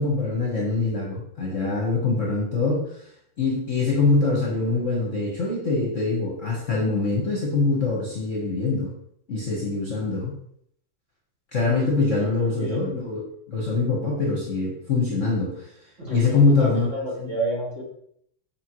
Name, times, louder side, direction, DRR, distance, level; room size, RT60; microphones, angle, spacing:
voice 1, 0.0-2.9 3.4-8.9 9.3-10.3 11.5-13.2 13.5-15.7 16.1-16.9, left 3 dB, 40° left, -3 dB, 1.4 m, -23 dB
voice 2, 12.2-12.8 16.0-17.8, right 1 dB, 35° right, -5 dB, 2.1 m, -30 dB
6.5 x 6.0 x 3.1 m, 0.69 s
omnidirectional pair, 2.4 m